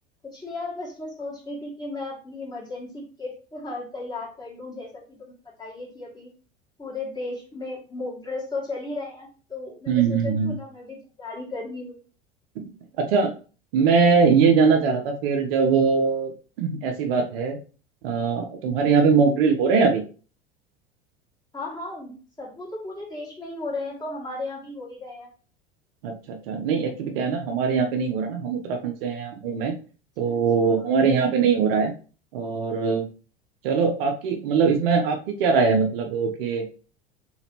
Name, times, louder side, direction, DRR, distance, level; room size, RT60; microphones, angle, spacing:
voice 1, 0.2-6.3 6.8-12.0 21.5-25.3 30.3-30.9, left 2 dB, 15° left, -3 dB, 2.5 m, -35 dB
voice 2, 9.9-10.5 12.6-12.7 13.0-13.4 13.7-16.3 16.6-17.6 18.0-20.0 26.0-29.7 30.2-31.9 32.3-33.1 33.6-36.6, right 5 dB, 65° right, 4 dB, 0.8 m, -21 dB
4.0 x 4.0 x 2.9 m, 0.38 s
hypercardioid pair, 80°, 31 cm